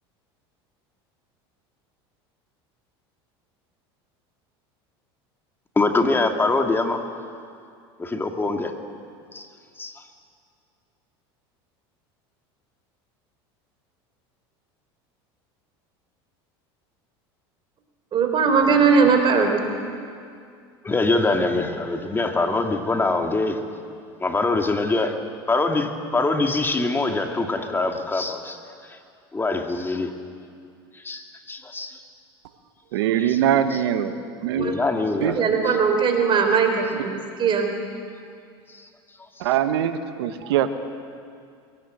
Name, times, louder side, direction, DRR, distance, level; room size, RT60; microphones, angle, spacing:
voice 1, 5.8-7.0 8.0-8.7 9.3-9.5 9.8-9.9 20.8-23.6 24.2-25.2 25.5-28.6 28.9-29.0 29.3-30.1 30.9-32.0 33.2-33.4 33.7-33.8 34.5-35.4 39.4-39.5, left 3 dB, 15° left, 4 dB, 2.2 m, -24 dB
voice 2, 18.1-19.6 34.6-34.8 35.3-37.7, right 5 dB, 40° right, 4 dB, 4.1 m, -19 dB
voice 3, 32.9-34.1 34.4-34.7 35.2-35.4 37.1-37.2 39.4-40.7, right 10 dB, 80° right, 9 dB, 1.4 m, -22 dB
22.5 x 17.5 x 8.0 m, 2.3 s
hypercardioid pair, 95°, 13 cm